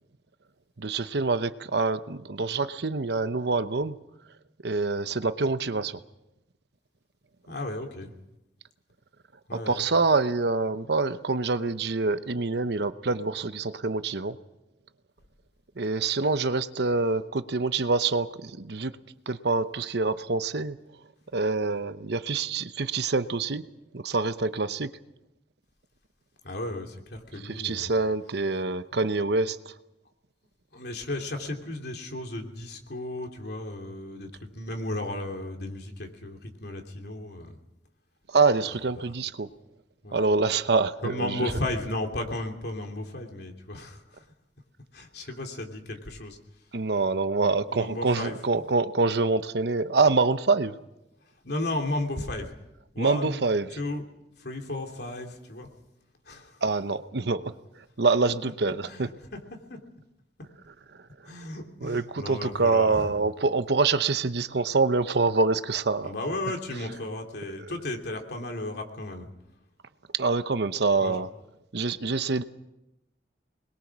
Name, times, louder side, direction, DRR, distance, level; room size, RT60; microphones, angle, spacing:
voice 1, 0.8-4.0 4.6-6.0 9.5-14.4 15.8-18.9 19.3-20.8 21.3-23.7 23.9-24.9 27.4-29.8 38.3-39.5 40.1-41.5 46.7-50.8 53.0-53.7 56.6-59.1 61.0-61.1 61.8-66.1 67.6-67.7 70.1-71.3 71.7-72.4, right 3 dB, 65° right, 12 dB, 0.9 m, -26 dB
voice 2, 7.5-8.1 9.5-9.8 26.4-27.9 28.9-29.0 30.7-37.6 39.0-39.1 40.0-40.2 41.0-44.3 44.9-46.4 47.7-48.3 51.4-52.5 52.9-53.4 53.8-54.0 54.4-55.7 56.2-56.6 58.9-59.8 61.2-63.2 66.0-69.3 71.0-71.2, left 1 dB, 65° left, 3 dB, 3.1 m, -34 dB
24.5 x 21.5 x 6.2 m, 0.92 s
head